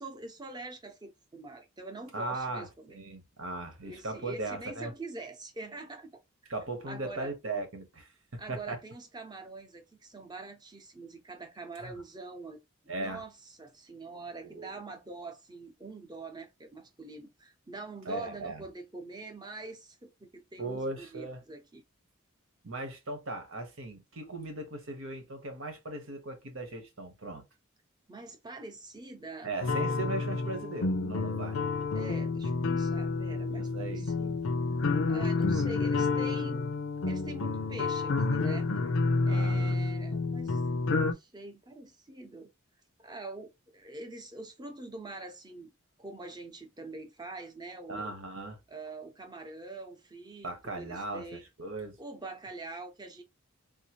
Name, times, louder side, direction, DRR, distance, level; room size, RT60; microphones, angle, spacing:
voice 1, 0.0-3.0 3.8-6.1 6.9-7.3 8.4-12.6 13.0-21.8 28.1-29.5 31.9-34.4 35.1-36.7 37.1-38.7 39.3-40.6 40.9-42.5 43.0-45.7 46.0-48.1 48.7-51.4 52.0-53.2, right 3 dB, 20° right, 0.7 m, -44 dB
voice 2, 2.1-4.9 6.5-8.8 11.8-11.9 12.9-13.2 14.4-14.7 18.1-18.6 20.6-21.4 22.6-27.4 29.4-31.6 33.5-34.1 39.2-39.8 47.9-48.6 50.4-52.0, right 2 dB, 80° right, 1.2 m, -38 dB
sound 1, 29.6-41.1, left 3 dB, 85° left, 0.5 m, -29 dB
3.7 x 2.6 x 2.9 m
head